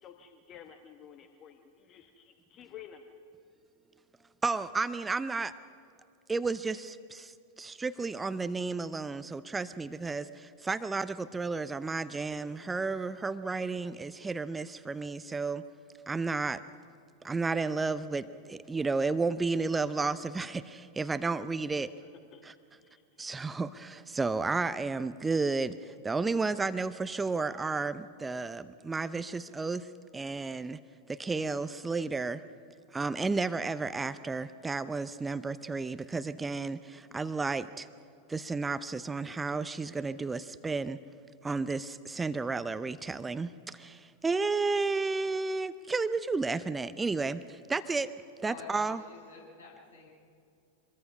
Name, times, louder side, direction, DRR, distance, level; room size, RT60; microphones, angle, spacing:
voice 1, 0.0-3.1 21.8-23.3, left 9 dB, 30° left, 6 dB, 1.2 m, -52 dB
voice 2, 4.4-5.5 6.3-15.6 16.1-16.6 17.2-21.9 22.4-22.5 23.2-30.8 31.1-32.4 32.9-37.9 38.3-41.0 41.4-48.1 48.4-49.0, right 4 dB, 10° right, 14 dB, 0.6 m, -32 dB
voice 3, 48.4-50.1, left 4 dB, 70° left, -2 dB, 6.6 m, -49 dB
25.5 x 22.0 x 5.4 m, 2.4 s
figure-of-eight pair, 90°, 0 cm